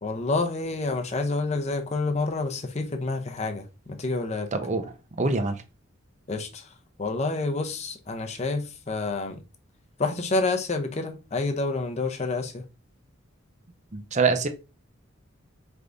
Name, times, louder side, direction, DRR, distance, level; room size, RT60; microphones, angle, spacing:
voice 1, 0.0-3.6 4.0-4.5 6.3-6.7 7.0-9.4 10.0-12.6, left 3 dB, 35° left, 0.6 m, -28 dB
voice 2, 4.5-5.6 13.9-14.5, right 4 dB, 35° right, 0.5 m, -25 dB
4.6 x 3.4 x 2.6 m
head